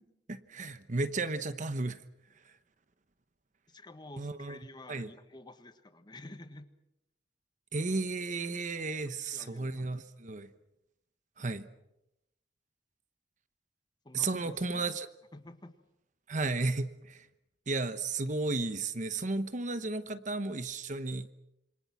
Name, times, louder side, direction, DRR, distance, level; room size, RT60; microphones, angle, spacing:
voice 1, 0.3-2.0 4.2-4.6 4.9-5.1 7.7-10.5 11.4-11.7 14.1-15.1 16.3-17.3 17.7-21.3, right 3 dB, 45° right, 12 dB, 1.1 m, -33 dB
voice 2, 3.7-6.7 9.0-10.0 14.0-14.8 15.3-15.8, left 2 dB, 25° left, 9 dB, 1.4 m, -51 dB
27.0 x 25.0 x 6.0 m, 0.88 s
head